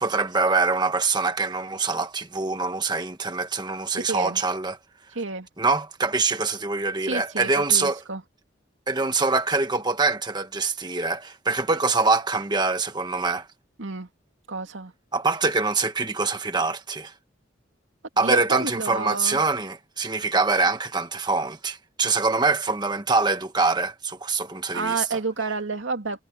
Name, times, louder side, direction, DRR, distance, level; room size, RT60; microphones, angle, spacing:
voice 1, 0.0-4.8 5.6-8.0 8.9-13.5 15.1-17.1 18.2-25.2, right 4 dB, 20° right, 1.4 m, -24 dB
voice 2, 3.9-4.4 5.1-5.5 7.1-8.2 13.8-14.1 14.5-14.9 18.2-19.4 24.7-26.2, right 3 dB, 85° right, 2.4 m, -30 dB
head